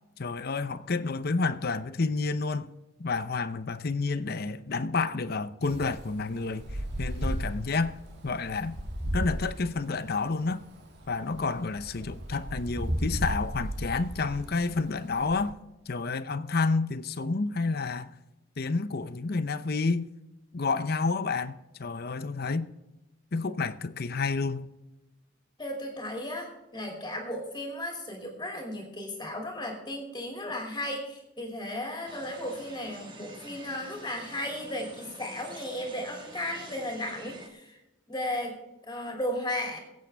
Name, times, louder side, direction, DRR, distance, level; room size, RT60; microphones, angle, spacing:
voice 1, 0.2-2.7 3.0-8.0 8.2-8.8 9.1-10.6 11.1-15.5 15.9-18.1 18.6-20.1 20.5-22.7 23.3-24.7, left 4 dB, 50° left, 0.7 m, -30 dB
Wind, 5.6-15.5, equal, 60° right, 2.4 m, -35 dB
voice 2, 25.6-37.8 38.1-39.8, left 1 dB, 20° left, 2.7 m, -35 dB
sound 1, 32.1-37.5, right 2 dB, 25° right, 1.6 m, -47 dB
22.5 x 8.5 x 3.5 m
head